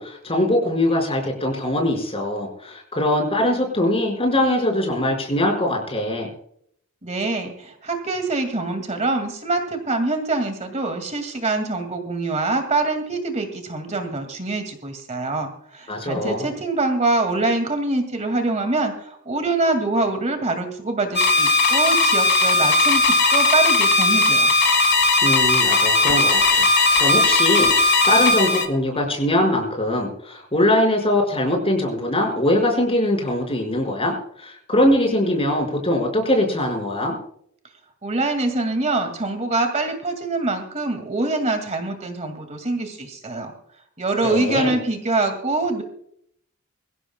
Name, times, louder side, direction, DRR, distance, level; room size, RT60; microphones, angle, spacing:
voice 1, 0.0-6.3 15.9-16.5 25.2-27.7 28.0-37.2 44.2-44.7, left 1 dB, 30° left, 2 dB, 5.1 m, -22 dB
voice 2, 7.0-24.5 38.0-43.5 44.0-45.8, right 2 dB, 35° right, 6 dB, 2.1 m, -24 dB
sound 1, 21.2-28.7, left 3 dB, 50° left, 2.0 m, -17 dB
24.0 x 16.0 x 2.2 m, 0.67 s
head